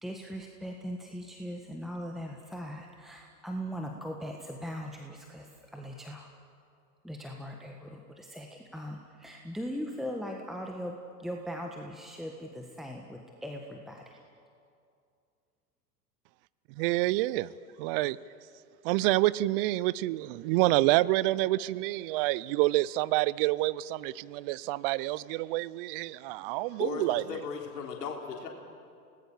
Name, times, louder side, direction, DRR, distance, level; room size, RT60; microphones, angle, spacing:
voice 1, 0.0-6.3 7.0-14.2, equal, ahead, 1 dB, 1.5 m, -40 dB
voice 2, 16.8-17.5 17.8-18.2 18.8-27.4, right 18 dB, 35° right, 20 dB, 0.6 m, -28 dB
voice 3, 26.4-28.5, left 6 dB, 75° left, 1 dB, 3.5 m, -37 dB
29.5 x 19.0 x 7.2 m, 2.5 s
hypercardioid pair, 110°, 49 cm